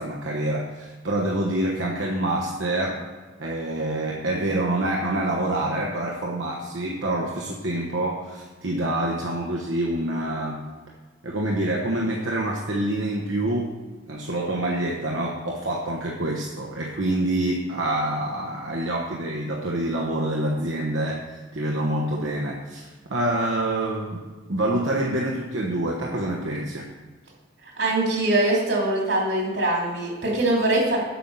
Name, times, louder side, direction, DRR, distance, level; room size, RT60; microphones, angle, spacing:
voice 1, 0.0-3.0 3.4-10.7 11.2-13.8 14.1-26.9, right 1 dB, 85° right, -2 dB, 1.1 m, -26 dB
voice 2, 27.6-31.0, right 2 dB, 65° right, -2 dB, 2.9 m, -23 dB
8.4 x 7.4 x 5.5 m, 1.3 s
head